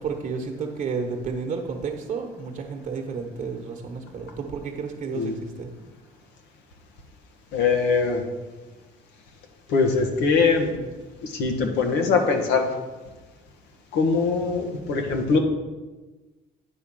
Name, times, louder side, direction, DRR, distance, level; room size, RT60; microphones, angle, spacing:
voice 1, 0.0-5.7, right 5 dB, 50° right, 3 dB, 1.1 m, -31 dB
voice 2, 7.5-8.2 9.7-10.7 11.2-12.7 13.9-15.4, left 4 dB, 85° left, 4 dB, 1.2 m, -22 dB
9.2 x 3.6 x 6.0 m, 1.2 s
cardioid pair, 110°, 17 cm